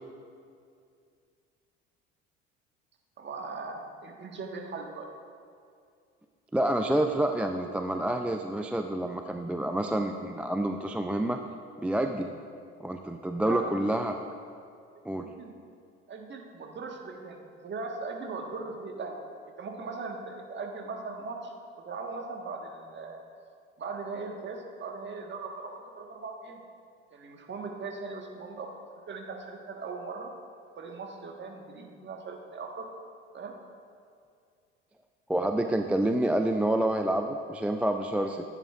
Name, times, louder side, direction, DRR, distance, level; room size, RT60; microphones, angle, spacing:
voice 1, 3.2-5.1 13.5-13.8 15.2-15.5 16.1-19.2 19.6-21.5 21.8-23.2 23.8-26.6 27.1-28.7 29.1-30.3 30.8-32.9 33.3-33.5, right 4 dB, 35° right, 2 dB, 1.4 m, -39 dB
voice 2, 6.5-11.4 11.8-12.3 12.8-14.1 15.1-15.3 35.3-38.4, right 1 dB, 5° right, 5 dB, 0.4 m, -28 dB
14.5 x 9.8 x 2.4 m, 2.4 s
hypercardioid pair, 60°, 33 cm